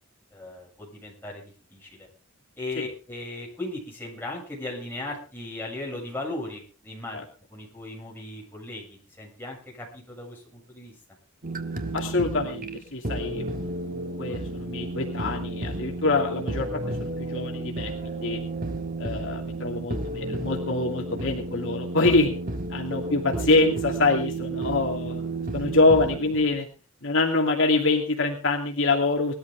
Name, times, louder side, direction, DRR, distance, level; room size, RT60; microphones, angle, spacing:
voice 1, 0.3-2.1 2.6-7.2 7.5-10.9, left 2 dB, 10° left, -3 dB, 7.4 m, -37 dB
sound 1, 11.4-26.6, right 2 dB, 40° right, 1.5 m, -32 dB
voice 2, 11.9-18.4 19.0-22.3 22.7-26.7 27.0-29.3, left 3 dB, 65° left, 1 dB, 2.7 m, -25 dB
20.0 x 13.0 x 3.7 m, 0.36 s
head